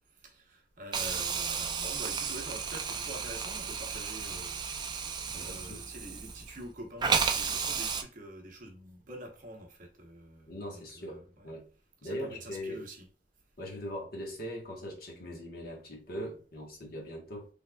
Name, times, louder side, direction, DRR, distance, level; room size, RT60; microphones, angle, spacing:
voice 1, 0.2-5.0 5.3-11.5 12.0-13.1, right 1 dB, 50° right, 0.8 m, -46 dB
Hiss, 0.9-6.6 7.0-8.0, right 5 dB, 25° right, 0.3 m, -33 dB
voice 2, 5.3-5.9 10.5-11.7 12.0-12.8 13.6-17.5, equal, 60° left, 1.1 m, -41 dB
3.4 x 3.3 x 2.2 m
head